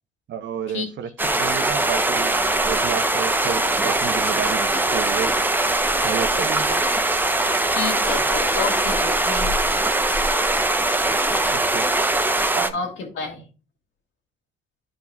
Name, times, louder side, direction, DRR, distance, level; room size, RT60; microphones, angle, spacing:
voice 1, 0.3-5.4 6.0-6.9 11.1-11.9 12.5-12.8, right 8 dB, 65° right, 0.9 m, -31 dB
sound 1, 1.2-12.7, right 2 dB, 10° right, 0.7 m, -21 dB
voice 2, 7.7-9.9 12.7-13.5, left 4 dB, 70° left, 2.3 m, -30 dB
12.5 x 4.7 x 2.3 m
cardioid pair, 90°, 20 cm